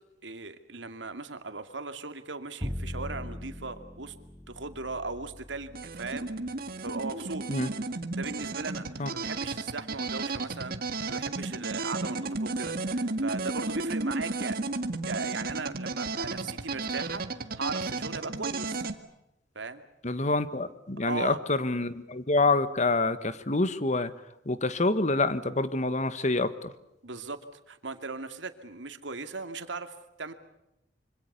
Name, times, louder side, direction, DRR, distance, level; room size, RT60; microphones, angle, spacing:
voice 1, 0.2-4.1 4.5-6.3 6.8-7.4 8.2-8.8 9.1-14.6 15.0-17.3 17.6-18.8 19.5-19.8 21.1-21.4 27.0-27.4 27.7-29.9 30.2-30.3, right 3 dB, 85° right, 8 dB, 2.4 m, -38 dB
Bowed string instrument, 2.6-8.7, left 1 dB, 5° right, 1.4 m, -42 dB
sound 1, 5.7-18.9, right 3 dB, 55° right, 1.9 m, -33 dB
voice 2, 20.0-24.1 24.4-26.7, left 2 dB, 40° left, 13 dB, 1.5 m, -27 dB
26.0 x 25.5 x 6.8 m, 0.87 s
head